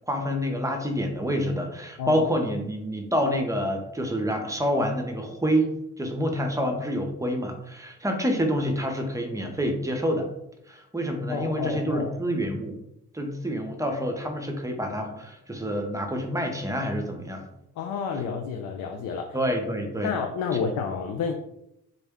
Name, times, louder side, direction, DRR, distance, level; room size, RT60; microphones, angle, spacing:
voice 1, 0.1-5.7 6.0-10.3 10.7-12.8 13.1-17.4 19.3-20.1, equal, 10° right, 3 dB, 0.6 m, -27 dB
voice 2, 11.3-12.2 17.8-19.4 20.0-21.3, left 6 dB, 80° left, 4 dB, 0.5 m, -30 dB
3.7 x 2.1 x 3.5 m, 0.84 s
cardioid pair, 90°, 30 cm